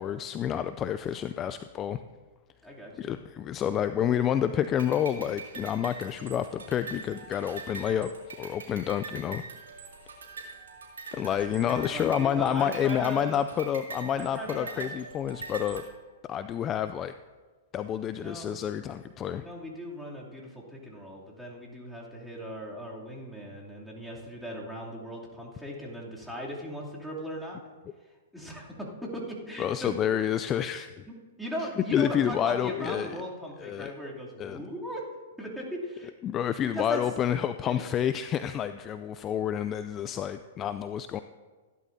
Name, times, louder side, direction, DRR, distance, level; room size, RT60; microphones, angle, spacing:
voice 1, 0.0-2.0 3.0-8.1 8.4-9.4 11.1-15.8 16.3-17.1 17.7-19.4 29.6-30.9 31.9-33.1 33.6-33.9 34.4-34.6 36.2-41.2, left 9 dB, 30° left, 11 dB, 0.4 m, -29 dB
voice 2, 2.6-3.2 11.7-13.4 14.2-14.9 18.1-18.5 19.4-27.6 28.3-29.9 31.4-35.0 35.4-36.1 36.7-37.0 37.6-37.9, equal, ahead, -5 dB, 2.8 m, -38 dB
sound 1, 4.8-15.8, right 4 dB, 85° right, 3.2 m, -43 dB
16.0 x 11.0 x 2.7 m, 1.4 s
hypercardioid pair, 125°, 0 cm